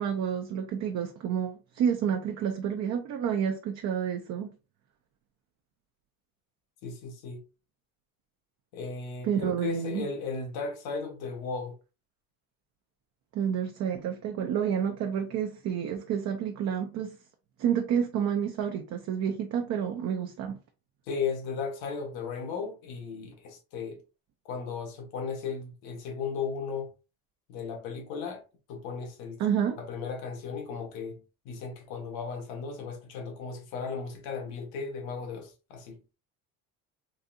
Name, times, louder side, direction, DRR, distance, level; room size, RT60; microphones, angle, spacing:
voice 1, 0.0-4.5 9.3-10.1 13.3-17.2 17.6-20.6 29.4-29.8, right 8 dB, 50° right, 0.6 m, -29 dB
voice 2, 6.8-7.4 8.7-11.8 21.1-24.0 24.4-26.9 27.5-28.4 28.7-29.4 29.8-31.2 31.4-36.0, left 5 dB, 85° left, 1.4 m, -36 dB
4.0 x 2.6 x 2.3 m
cardioid pair, 135°, 36 cm